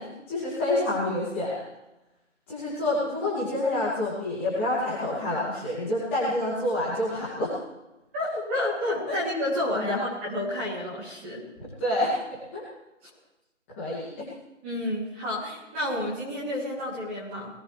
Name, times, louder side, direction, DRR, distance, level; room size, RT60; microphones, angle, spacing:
voice 1, 0.0-1.6 2.5-7.5 9.1-9.2 9.7-10.0 11.6-12.1 12.5-12.6 13.7-14.3, left 1 dB, 10° left, -10 dB, 2.5 m, -28 dB
voice 2, 8.1-11.4 14.6-17.5, left 1 dB, 10° right, -8 dB, 2.9 m, -30 dB
22.0 x 18.0 x 3.4 m, 0.97 s
figure-of-eight pair, 175°, 38 cm